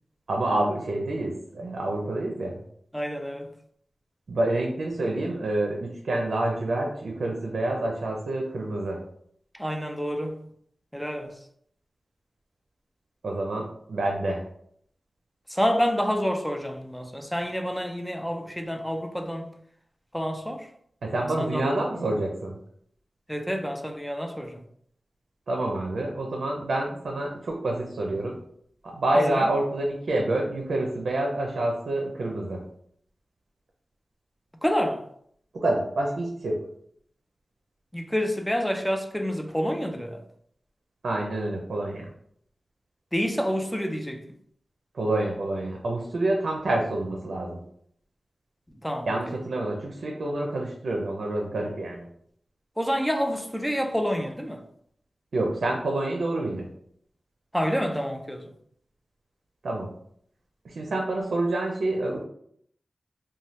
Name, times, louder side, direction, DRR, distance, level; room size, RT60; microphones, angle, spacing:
voice 1, 0.3-2.6 4.3-9.0 13.2-14.4 21.0-22.6 25.5-28.4 28.8-32.6 35.5-36.6 41.0-42.1 44.9-47.6 49.1-52.1 55.3-56.7 59.6-59.9 60.6-62.2, right 2 dB, 85° right, 0.5 m, -27 dB
voice 2, 2.9-3.5 9.5-10.4 10.9-11.3 15.5-19.5 20.1-20.7 21.2-21.7 23.3-24.6 29.1-29.5 34.6-35.0 37.9-40.2 43.1-44.3 48.8-49.1 52.8-54.6 57.5-58.5, equal, 5° left, 0.4 m, -28 dB
2.7 x 2.2 x 3.1 m
wide cardioid pair, 95°, 0 cm